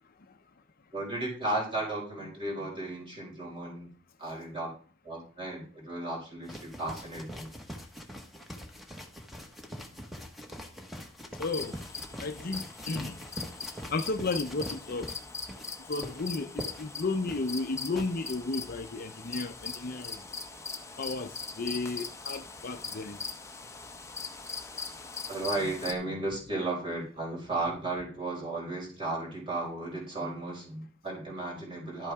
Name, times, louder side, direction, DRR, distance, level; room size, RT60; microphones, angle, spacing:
voice 1, 0.9-3.9 4.2-4.7 5.0-7.5 25.3-32.1, right 2 dB, 25° right, 5.2 m, -34 dB
sound 1, 6.5-18.1, equal, ahead, 1.3 m, -43 dB
voice 2, 11.4-11.7 12.2-13.2 13.9-15.1 15.9-20.2 21.0-21.3 21.6-23.2, left 3 dB, 50° left, 0.7 m, -33 dB
sound 2, 11.4-25.9, left 4 dB, 15° left, 0.8 m, -41 dB
11.5 x 8.4 x 3.6 m
head